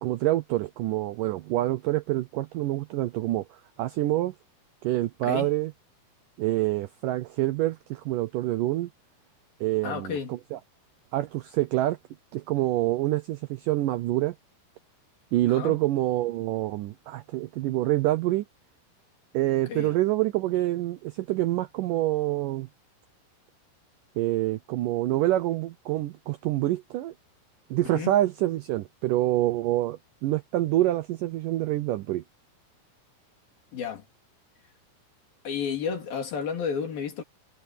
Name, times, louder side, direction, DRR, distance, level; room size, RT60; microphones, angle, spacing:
voice 1, 0.0-4.3 4.8-5.7 6.4-8.9 9.6-10.6 11.1-12.0 12.3-14.4 15.3-18.4 19.3-22.7 24.2-27.1 27.7-32.2, right 15 dB, 85° right, 1.9 m, -26 dB
voice 2, 9.8-10.4 15.5-15.8 19.7-19.9 27.8-28.2 33.7-34.0 35.4-37.2, left 6 dB, 60° left, 4.8 m, -32 dB
omnidirectional pair, 4.7 m